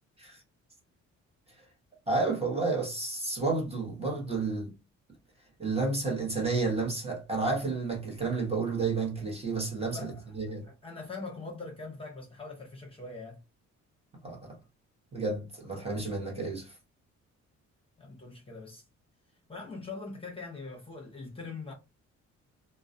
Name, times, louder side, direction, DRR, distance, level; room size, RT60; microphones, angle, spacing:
voice 1, 2.1-4.7 5.6-10.6 14.2-14.6 15.1-16.7, right 3 dB, 20° right, 0.9 m, -31 dB
voice 2, 9.9-10.3 10.6-13.4 18.0-18.8 19.5-21.7, left 3 dB, 20° left, 0.8 m, -42 dB
2.3 x 2.1 x 2.6 m
cardioid pair, 90°, 30 cm